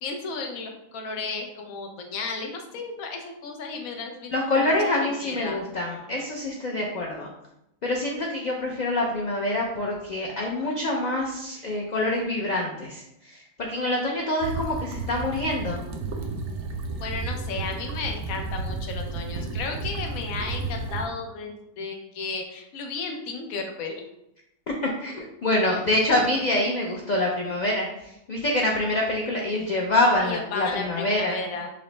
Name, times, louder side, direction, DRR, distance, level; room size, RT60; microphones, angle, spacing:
voice 1, 0.0-4.7 5.0-5.6 17.0-24.0 30.2-31.7, left 4 dB, 90° left, 3 dB, 1.1 m, -34 dB
voice 2, 4.3-7.3 7.8-15.8 24.8-31.4, left 1 dB, 65° left, -2 dB, 0.4 m, -26 dB
sound 1, 14.4-21.1, right 3 dB, 70° right, 0.8 m, -32 dB
5.2 x 2.0 x 3.2 m, 0.84 s
omnidirectional pair, 1.4 m